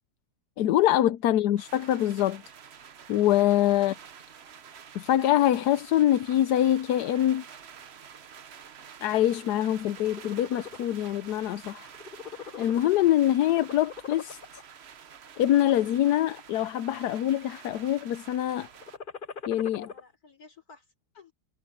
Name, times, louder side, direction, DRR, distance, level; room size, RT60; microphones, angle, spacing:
voice 1, 0.6-2.4 3.1-4.0 4.9-7.4 9.0-11.9 12.6-14.4 15.4-18.7 19.5-19.9, left 12 dB, 85° left, 1.2 m, -24 dB
voice 2, 1.2-1.6 19.8-21.3, left 4 dB, 65° left, 4.6 m, -55 dB
sound 1, 1.6-19.0, right 7 dB, 50° right, 1.0 m, -49 dB
sound 2, 9.9-10.9 11.3-11.6 11.9-13.1 13.5-14.6 15.2-15.7 16.3-17.1 17.4-17.9 18.7-20.0, left 5 dB, 35° left, 1.1 m, -41 dB
omnidirectional pair, 1.7 m